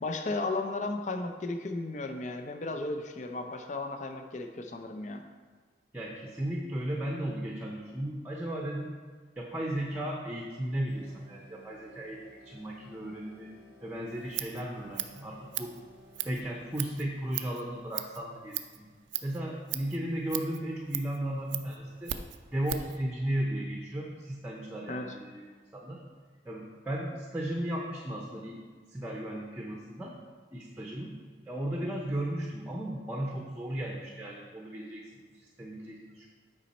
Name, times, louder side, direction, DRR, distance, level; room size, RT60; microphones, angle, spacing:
voice 1, 0.0-5.2 24.9-25.1, left 2 dB, 40° left, 5 dB, 0.5 m, -34 dB
voice 2, 5.9-8.9 9.4-13.5 13.8-15.7 16.2-18.9 19.2-22.2 22.5-26.0 26.4-28.6 28.9-30.1 30.5-31.1 31.4-36.3, right 1 dB, 10° right, -1 dB, 0.7 m, -35 dB
sound 1, 10.9-17.1, left 1 dB, 65° left, 2.5 m, -57 dB
Scissors, 14.1-23.0, right 13 dB, 80° right, 0.4 m, -39 dB
8.7 x 5.2 x 4.1 m, 1.5 s
head